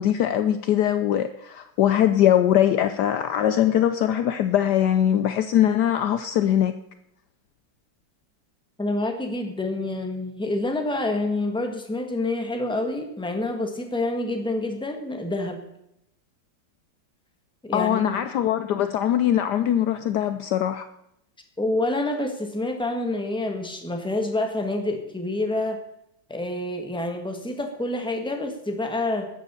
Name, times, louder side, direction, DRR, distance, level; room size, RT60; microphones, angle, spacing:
voice 1, 0.0-6.7 17.7-20.9, left 10 dB, 70° left, 10 dB, 1.1 m, -21 dB
voice 2, 8.8-15.6 17.6-18.3 21.6-25.8 26.3-29.3, left 2 dB, 5° left, 4 dB, 1.3 m, -27 dB
13.0 x 7.7 x 6.9 m, 0.80 s
omnidirectional pair, 2.1 m